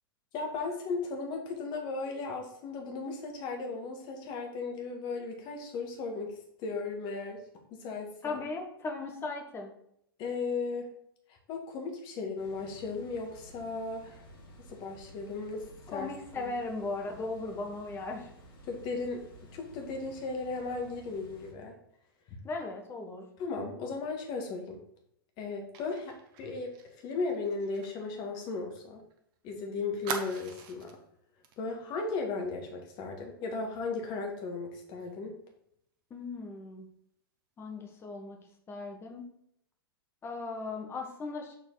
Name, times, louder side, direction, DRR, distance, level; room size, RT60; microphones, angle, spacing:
voice 1, 0.3-6.3 6.6-7.4 7.7-8.4 10.2-10.9 11.3-14.2 14.7-16.1 16.4-16.5 18.7-19.2 19.5-21.7 22.3-22.4 23.4-24.8 25.4-26.7 27.0-29.0 29.4-31.0 31.6-35.4, left 4 dB, 35° left, 2 dB, 1.7 m, -36 dB
voice 2, 8.2-9.7 15.9-18.3 22.4-23.2 36.1-36.9 37.6-38.4 38.7-39.3 40.2-41.6, left 3 dB, 20° left, 2 dB, 1.4 m, -37 dB
sound 1, 12.4-21.5, equal, 60° left, 2.3 m, -53 dB
Fire, 25.7-29.2 29.4-29.5 30.0-31.0 31.4-31.6 31.9-32.2, right 7 dB, 35° right, 1.0 m, -42 dB
6.9 x 4.3 x 4.0 m, 0.72 s
figure-of-eight pair, 105°, 13 cm